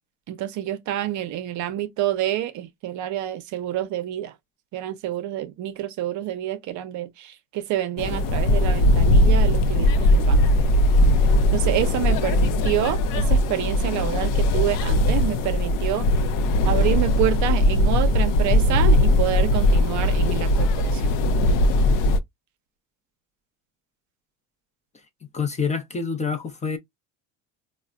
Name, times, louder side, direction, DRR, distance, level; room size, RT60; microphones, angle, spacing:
voice 1, 0.3-4.3 4.7-10.4 11.5-16.1 16.7-21.2, right 12 dB, 55° right, 0.6 m, -28 dB
sound 1, 8.0-22.2, left 1 dB, 70° left, 0.6 m, -19 dB
voice 2, 25.3-26.8, left 5 dB, 20° left, 0.5 m, -27 dB
4.0 x 2.1 x 2.3 m
cardioid pair, 125°, 35 cm